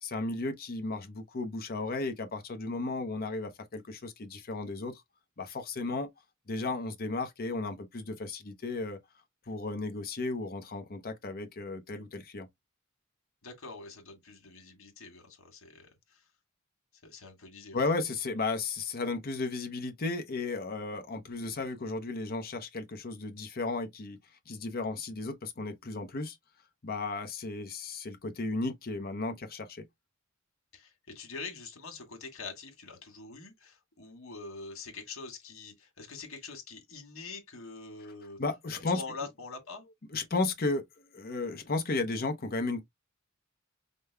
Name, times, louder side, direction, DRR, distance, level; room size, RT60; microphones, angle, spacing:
voice 1, 0.0-5.0 5.4-6.1 6.5-9.0 9.5-12.5 17.7-24.2 24.5-26.4 26.8-29.8 38.4-39.0 40.1-40.8 41.1-42.8, left 3 dB, 45° left, 0.8 m, -34 dB
voice 2, 13.4-16.2 17.0-17.9 30.7-38.4 38.7-39.9, left 4 dB, 75° left, 1.7 m, -45 dB
5.3 x 2.2 x 3.3 m
head